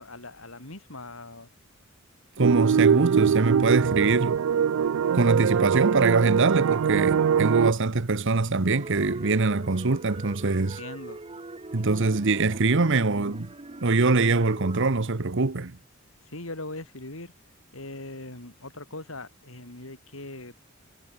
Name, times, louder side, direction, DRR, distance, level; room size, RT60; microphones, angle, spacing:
voice 1, 0.0-1.5 10.5-11.2 16.2-17.3 17.7-20.6, left 2 dB, 70° left, 5.7 m, -40 dB
voice 2, 2.4-4.4 5.1-10.8 11.7-13.5 13.8-15.8, right 3 dB, 65° right, 1.1 m, -23 dB
sound 1, 2.4-7.7, right 7 dB, 85° right, 0.4 m, -22 dB
sound 2, 8.7-14.9, right 2 dB, 30° right, 0.9 m, -41 dB
head